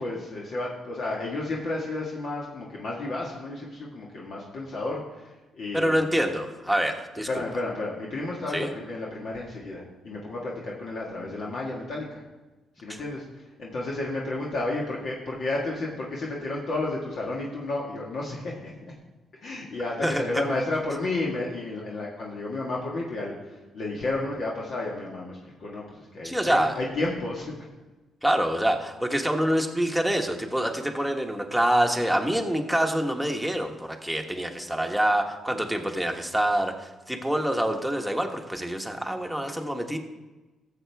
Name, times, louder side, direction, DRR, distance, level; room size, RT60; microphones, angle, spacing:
voice 1, 0.0-6.0 7.3-12.2 12.8-18.7 19.4-27.7, left 2 dB, 60° left, -4 dB, 1.7 m, -32 dB
voice 2, 5.7-7.3 8.5-8.7 20.0-20.4 26.2-26.7 28.2-40.0, right 1 dB, ahead, 3 dB, 1.2 m, -26 dB
14.0 x 7.4 x 3.5 m, 1.1 s
cardioid pair, 90°, 0 cm